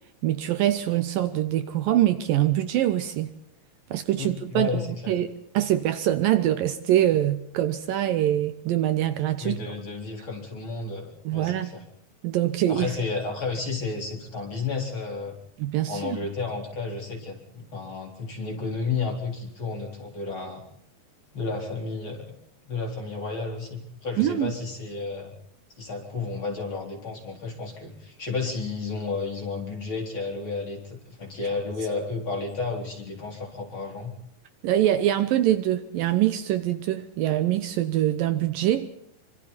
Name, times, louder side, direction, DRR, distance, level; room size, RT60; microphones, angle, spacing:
voice 1, 0.2-3.3 3.9-9.7 11.3-11.7 12.2-12.9 15.6-16.2 24.2-24.5 34.6-38.9, right 12 dB, 70° right, 2.5 m, -24 dB
voice 2, 4.2-5.1 9.4-11.8 12.7-15.3 15.9-20.6 21.3-22.3 22.6-25.3 25.8-34.1, left 4 dB, 30° left, 4.5 m, -32 dB
27.0 x 25.5 x 4.2 m
omnidirectional pair, 4.5 m